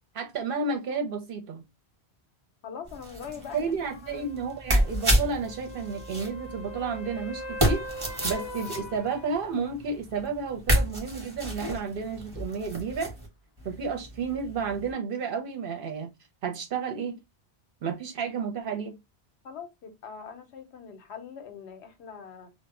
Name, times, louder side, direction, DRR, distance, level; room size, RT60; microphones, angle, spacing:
voice 1, 0.1-1.7 3.5-7.8 8.2-13.1 13.6-16.1 16.4-17.2 17.8-19.0, right 5 dB, 60° right, 0.7 m, -31 dB
voice 2, 2.6-4.2 19.4-22.5, left 7 dB, 80° left, 0.9 m, -42 dB
sound 1, 2.8-13.3 13.6-14.9, equal, 25° right, 0.7 m, -31 dB
sound 2, 4.1-9.7 13.8-13.9, left 1 dB, 40° left, 0.4 m, -41 dB
2.1 x 2.0 x 3.5 m
omnidirectional pair, 1.1 m